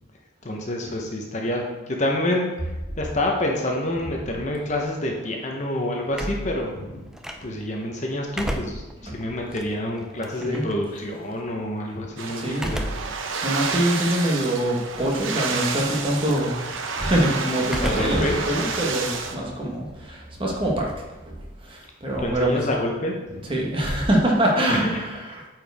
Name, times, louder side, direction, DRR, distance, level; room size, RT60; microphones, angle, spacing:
voice 1, 0.4-2.7 3.0-7.0 7.4-13.0 17.8-18.4 22.2-23.5 24.5-25.0, left 1 dB, 35° left, 0 dB, 0.9 m, -27 dB
sound 1, 6.1-7.7 8.1-10.7 12.5-13.2 13.7-13.8 14.9-15.3 15.6-16.1 17.6-18.3 18.6-20.0, equal, 5° right, 0.3 m, -33 dB
sound 2, 12.2-19.4, right 5 dB, 80° right, 0.7 m, -30 dB
voice 2, 12.4-12.7 13.4-16.5 16.9-20.9 21.6-22.6 23.5-25.1, right 1 dB, 25° right, -2 dB, 1.2 m, -24 dB
8.6 x 4.6 x 3.5 m, 1.1 s
head